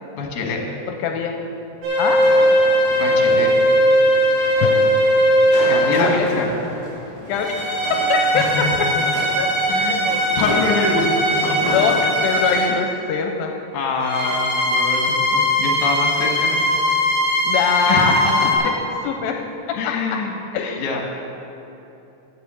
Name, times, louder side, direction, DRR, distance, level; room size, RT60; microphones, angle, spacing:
voice 1, 0.1-0.6 2.9-3.5 5.6-6.5 8.3-8.7 9.7-11.7 12.7-12.8 13.7-16.6 17.9-18.7 19.7-20.3 20.8-21.0, left 3 dB, 60° left, 1 dB, 2.7 m, -25 dB
voice 2, 0.9-1.3 2.0-2.2 4.6-4.7 5.8-6.3 7.2-7.5 7.9-8.9 9.4-9.5 9.9-10.6 11.7-13.5 17.5-18.3 19.0-19.4 19.8-19.9 20.5-21.0, left 6 dB, 85° left, 3 dB, 2.4 m, -23 dB
sound 1, 1.8-6.2 7.3-12.8 14.0-18.6, equal, 85° right, 4.5 m, -19 dB
sound 2, 2.0-12.0, left 1 dB, 25° right, 0.8 m, -33 dB
10.5 x 7.5 x 7.4 m, 3.0 s
omnidirectional pair, 4.2 m